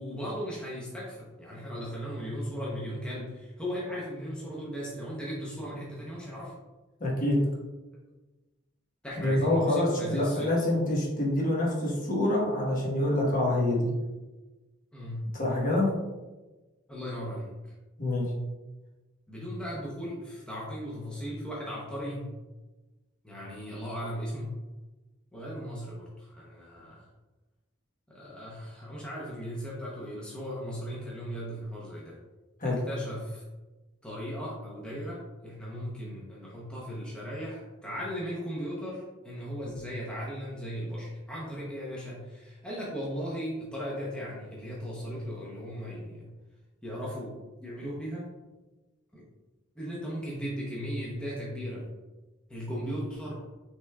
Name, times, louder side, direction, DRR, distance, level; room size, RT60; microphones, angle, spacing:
voice 1, 0.0-6.5 9.0-10.7 14.9-15.4 16.9-17.7 19.3-22.3 23.2-24.6 25.3-27.1 28.1-32.2 32.6-33.4 34.0-46.3 46.8-48.3 49.1-49.2 49.8-51.8 52.5-53.4, equal, 5° left, -6 dB, 0.7 m, -37 dB
voice 2, 7.0-7.4 9.2-13.9 15.3-15.9 18.0-18.2 32.6-32.8, left 1 dB, 40° left, -3 dB, 1.2 m, -26 dB
5.9 x 3.3 x 2.3 m, 1.1 s
head